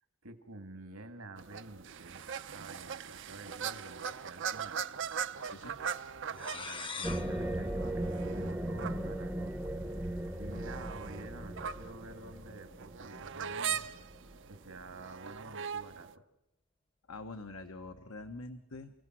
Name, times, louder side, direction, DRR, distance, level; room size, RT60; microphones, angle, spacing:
voice 1, 0.2-4.8 6.3-9.6 10.0-13.8 14.5-16.2, right 2 dB, 75° right, 8 dB, 2.2 m, -49 dB
sound 1, 1.4-16.1, right 7 dB, 55° right, 0.7 m, -41 dB
voice 2, 5.5-5.8 17.1-18.9, left 2 dB, 70° left, 7 dB, 1.2 m, -45 dB
sound 2, 6.3-8.9, left 4 dB, 25° left, 0.9 m, -45 dB
sound 3, 7.0-14.3, right 1 dB, 10° right, 0.7 m, -38 dB
30.0 x 17.0 x 6.2 m, 0.91 s
head